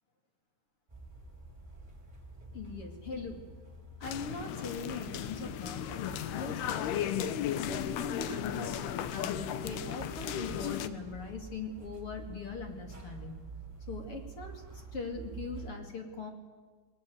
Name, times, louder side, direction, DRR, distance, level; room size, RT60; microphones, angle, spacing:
sound 1, 0.9-15.7, right 3 dB, 10° right, 4.4 m, -48 dB
voice 1, 2.5-3.4 4.0-7.3 7.6-8.8 9.1-13.4 13.9-16.3, left 4 dB, 40° left, 3 dB, 3.0 m, -41 dB
sound 2, 4.0-10.9, left 10 dB, 90° left, 3.0 m, -35 dB
29.0 x 21.0 x 8.0 m, 1.4 s
omnidirectional pair, 4.5 m